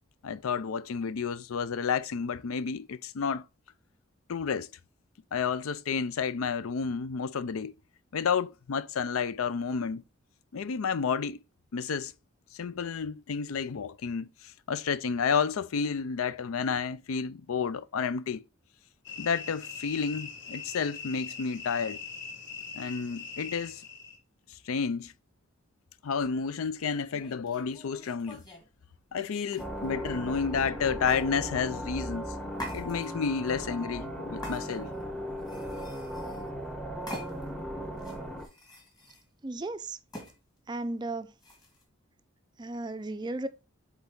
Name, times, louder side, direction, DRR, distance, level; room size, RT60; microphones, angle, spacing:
voice 1, 0.2-3.4 4.3-4.7 5.3-7.7 8.1-10.0 10.5-11.4 11.7-12.1 12.5-18.4 19.2-22.0 22.8-23.8 24.7-25.1 26.0-28.4 29.1-32.3 32.7-34.9, left 6 dB, 90° left, 0.5 m, -31 dB
sound 1, 19.0-24.2, left 5 dB, 60° left, 1.6 m, -42 dB
sound 2, 27.1-28.7 29.5-30.1 31.1-31.3 32.5-33.3 34.4-35.0 35.4-36.5 37.1-37.6 38.0-39.2 40.1-40.3 41.4-41.8, left 1 dB, 20° left, 1.5 m, -44 dB
sound 3, 29.6-38.5, equal, 5° left, 0.7 m, -37 dB
voice 2, 39.4-40.0 40.7-41.3 42.6-43.5, right 2 dB, 20° right, 0.3 m, -34 dB
8.1 x 3.5 x 3.6 m
head